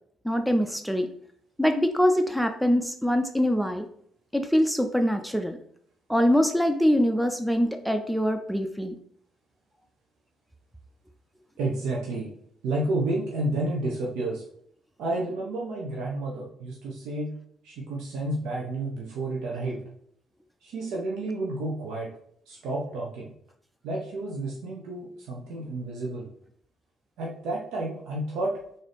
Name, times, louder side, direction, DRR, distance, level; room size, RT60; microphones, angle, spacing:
voice 1, 0.2-1.1 1.6-3.9 4.3-5.6 6.1-9.0, equal, ahead, 6 dB, 0.4 m, -24 dB
voice 2, 11.6-12.3 12.6-14.4 15.0-17.3 17.6-19.8 20.6-22.1 22.5-23.3 23.8-26.3 27.2-28.6, right 2 dB, 80° right, -3 dB, 0.6 m, -30 dB
3.7 x 2.7 x 3.4 m, 0.66 s
supercardioid pair, 65°, 0 cm